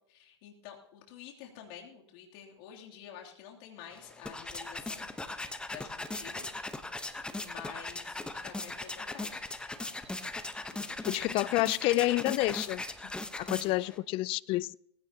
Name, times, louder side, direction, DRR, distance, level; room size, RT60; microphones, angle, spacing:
voice 1, 0.1-6.5 7.1-9.4 10.7-11.3 13.6-14.0, left 9 dB, 55° left, 3.0 m, -50 dB
sound 1, 3.9-14.0, left 2 dB, 5° left, 1.0 m, -39 dB
voice 2, 11.1-12.8 13.4-14.8, left 18 dB, 40° left, 0.4 m, -29 dB
19.0 x 16.0 x 2.9 m
hypercardioid pair, 120°, 15 cm